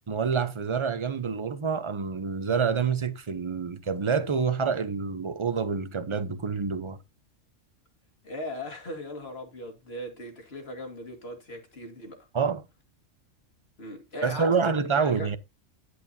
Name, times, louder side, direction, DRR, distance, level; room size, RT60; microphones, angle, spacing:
voice 1, 0.1-7.0 12.3-12.6 14.2-15.4, right 5 dB, 30° right, 0.7 m, -27 dB
voice 2, 8.2-12.3 13.8-15.4, left 1 dB, 50° left, 2.4 m, -39 dB
11.0 x 9.5 x 2.8 m
omnidirectional pair, 1.3 m